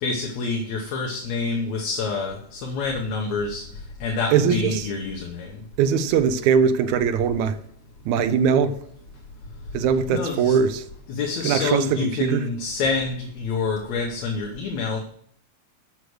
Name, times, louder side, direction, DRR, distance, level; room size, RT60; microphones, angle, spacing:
voice 1, 0.0-3.6 4.0-5.5 10.1-10.6 11.1-15.0, left 4 dB, 75° left, 2.3 m, -27 dB
voice 2, 4.3-4.8 5.8-7.5 8.1-8.7 9.7-10.8 11.4-12.4, right 7 dB, 85° right, 2.1 m, -21 dB
8.3 x 6.4 x 6.3 m
omnidirectional pair, 3.3 m